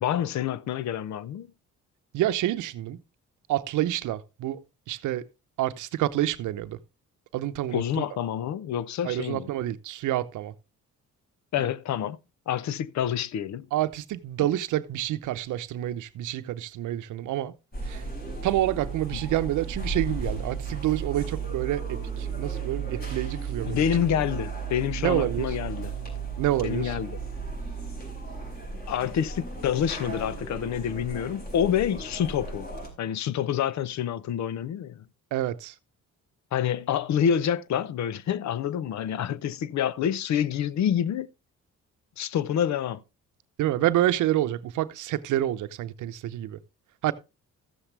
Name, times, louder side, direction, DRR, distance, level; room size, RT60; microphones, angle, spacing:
voice 1, 0.0-1.5 7.7-9.5 11.5-12.2 12.5-13.7 14.4-14.5 23.7-25.9 26.6-27.2 28.9-32.7 33.0-35.0 36.5-41.3 42.2-43.0, left 9 dB, 65° left, 0.7 m, -27 dB
voice 2, 2.1-3.0 3.5-4.6 4.9-5.3 5.6-6.8 7.3-8.0 9.0-10.5 11.6-11.7 13.7-17.5 17.8-18.0 18.4-23.9 25.0-25.5 26.4-27.0 35.3-35.7 43.6-46.6 47.0-47.1, right 13 dB, 80° right, 0.8 m, -28 dB
sound 1, 17.7-32.9, right 5 dB, 30° left, 5.0 m, -34 dB
14.0 x 7.3 x 3.3 m
cardioid pair, 90°, 30 cm